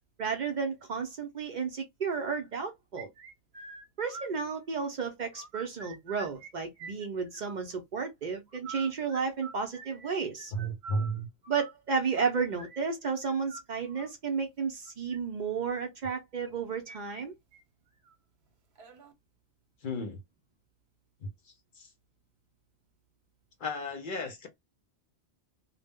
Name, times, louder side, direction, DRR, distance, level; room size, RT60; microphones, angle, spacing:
voice 1, 0.2-3.1 4.0-10.5 11.5-17.3, right 5 dB, 55° right, 0.6 m, -32 dB
sound 1, 3.0-4.9 5.2-6.5 6.8-7.8 8.5-14.1 14.9-15.2 16.4-17.3 17.5-17.6 18.1-18.2 18.8-19.1, right 4 dB, 80° right, 1.0 m, -47 dB
voice 2, 10.5-11.3 19.8-20.2 21.2-21.3 21.8-21.9 23.6-24.5, equal, 60° left, 0.7 m, -33 dB
2.1 x 2.0 x 3.4 m
omnidirectional pair, 1.1 m